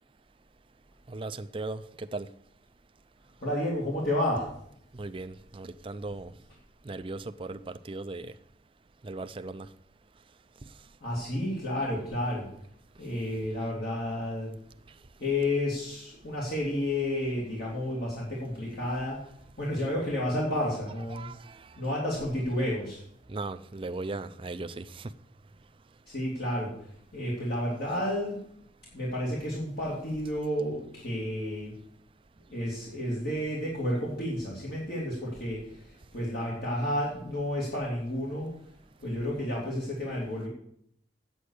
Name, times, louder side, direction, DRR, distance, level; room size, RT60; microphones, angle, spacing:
voice 1, 1.1-2.3 4.9-6.3 6.8-8.3 9.0-9.7 21.1-21.7 23.3-25.1, right 2 dB, 30° right, 10 dB, 0.5 m, -38 dB
voice 2, 3.4-4.5 11.0-12.5 13.0-14.5 15.2-19.2 19.6-21.3 21.8-23.0 26.1-28.5 28.9-31.7 32.5-38.5 39.0-40.5, left 1 dB, 55° left, -5 dB, 2.6 m, -31 dB
8.5 x 8.4 x 6.4 m, 0.69 s
head